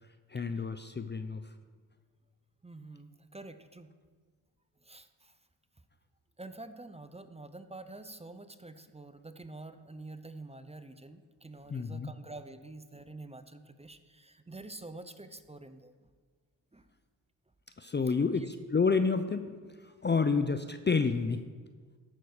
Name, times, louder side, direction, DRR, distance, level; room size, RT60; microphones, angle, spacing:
voice 1, 0.3-1.5 11.7-12.1 17.8-19.6 19.8-21.4, left 4 dB, 25° left, 10 dB, 0.6 m, -29 dB
voice 2, 2.6-3.9 4.8-5.4 6.4-16.1 16.7-16.9 18.1-18.5 20.3-20.4, right 2 dB, 15° right, 10 dB, 0.7 m, -47 dB
13.5 x 5.9 x 4.9 m, 1.5 s
supercardioid pair, 45°, 45 cm